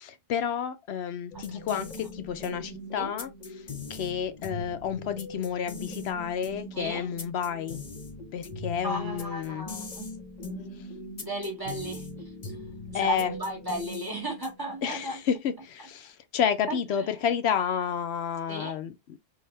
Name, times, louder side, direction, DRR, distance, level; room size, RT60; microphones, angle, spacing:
voice 1, 0.0-3.3 3.9-7.8 8.3-9.7 12.9-13.3 14.8-19.2, left 8 dB, 80° left, 0.9 m, -30 dB
sound 1, 1.3-14.8, left 3 dB, 40° left, 1.0 m, -41 dB
voice 2, 1.3-2.1 3.0-3.1 6.7-7.1 8.8-10.1 11.2-12.6 12.9-15.2 16.7-17.3 18.5-18.8, right 2 dB, 20° right, 1.8 m, -35 dB
5.7 x 2.7 x 3.2 m
omnidirectional pair, 1.1 m